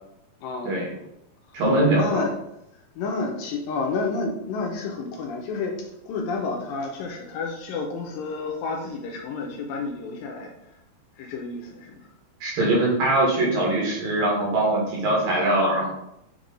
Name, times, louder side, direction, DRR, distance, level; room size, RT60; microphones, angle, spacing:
voice 1, 0.4-0.9 1.9-2.4 3.0-10.5 11.2-12.0 15.2-15.3, left 4 dB, 75° left, 1 dB, 2.3 m, -30 dB
voice 2, 1.5-2.2 12.4-15.9, right 1 dB, 65° right, -5 dB, 3.5 m, -22 dB
7.2 x 3.4 x 3.9 m, 0.83 s
omnidirectional pair, 4.4 m